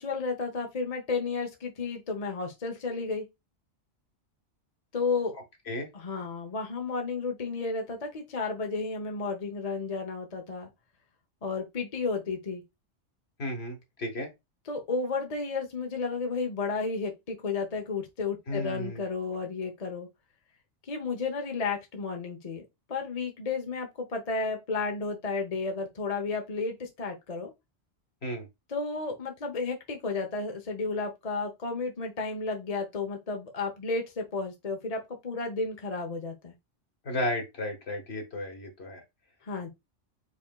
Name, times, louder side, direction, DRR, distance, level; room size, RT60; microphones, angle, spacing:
voice 1, 0.0-3.3 4.9-5.3 5.9-10.7 11.4-12.6 14.7-20.1 20.9-22.6 22.9-27.5 28.7-36.5 39.4-39.7, left 4 dB, 35° left, 0.9 m, -32 dB
voice 2, 13.4-14.3 18.5-19.0 28.2-28.5 37.0-39.0, left 1 dB, 60° left, 1.8 m, -33 dB
4.9 x 4.3 x 2.3 m
omnidirectional pair, 1.2 m